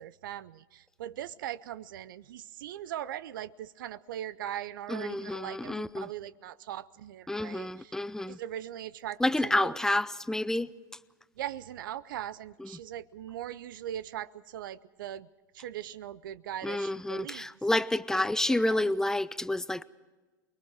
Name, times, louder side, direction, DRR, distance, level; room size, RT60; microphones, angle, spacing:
voice 1, 0.0-7.9 8.3-9.8 11.4-15.3 15.5-17.5 18.1-18.9, right 11 dB, 70° right, 0.6 m, -40 dB
voice 2, 4.9-6.1 7.3-8.4 9.2-10.7 12.6-12.8 16.6-19.8, left 1 dB, 5° left, 0.7 m, -29 dB
29.0 x 21.0 x 4.6 m
hypercardioid pair, 90°, 11 cm